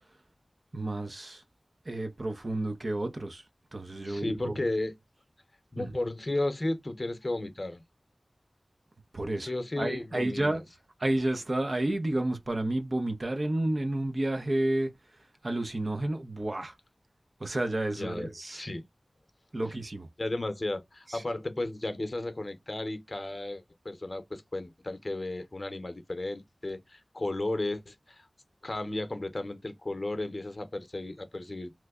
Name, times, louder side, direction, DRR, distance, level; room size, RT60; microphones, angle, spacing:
voice 1, 0.7-1.4 1.9-3.4 3.7-4.6 5.8-5.9 9.1-9.5 9.8-10.6 11.0-14.9 15.4-16.7 17.4-18.6 19.5-20.1 21.1-21.2, right 1 dB, 55° right, 0.7 m, -30 dB
voice 2, 4.0-4.9 5.7-7.8 9.4-10.6 17.9-18.8 19.6-19.7 20.2-28.3 28.6-31.7, left 2 dB, 45° left, 0.7 m, -34 dB
3.0 x 2.1 x 3.5 m
wide cardioid pair, 60°, 0 cm